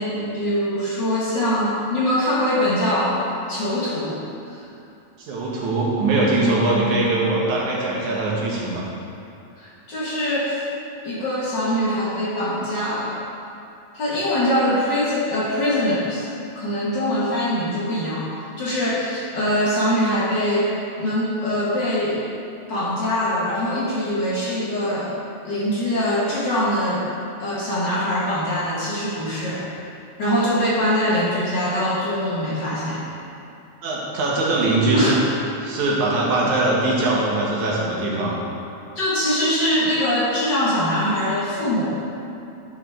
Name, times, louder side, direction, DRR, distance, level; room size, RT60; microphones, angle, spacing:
voice 1, 0.0-3.2 3.5-4.6 9.6-10.6 11.0-13.2 13.9-16.3 16.5-18.3 18.6-22.2 22.7-25.2 25.4-27.0 27.4-29.7 30.2-33.0 34.9-35.2 38.9-42.0, left 1 dB, 45° left, -8 dB, 1.7 m, -23 dB
voice 2, 5.2-8.8 33.8-35.2 35.6-38.4, right 2 dB, 85° right, -5 dB, 2.9 m, -21 dB
11.0 x 6.4 x 3.5 m, 2.7 s
omnidirectional pair, 3.3 m